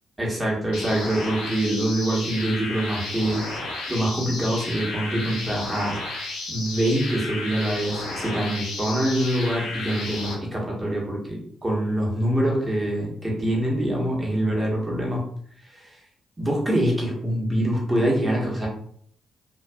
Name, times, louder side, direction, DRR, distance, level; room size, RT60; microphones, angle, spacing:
voice 1, 0.2-3.4 3.9-6.0 6.5-15.2 15.7-16.0 16.4-18.7, right 1 dB, 25° right, -3 dB, 1.0 m, -25 dB
sound 1, 0.7-10.3, left 2 dB, 75° left, 0.7 m, -32 dB
2.4 x 2.2 x 2.2 m, 0.64 s
hypercardioid pair, 40°, 0 cm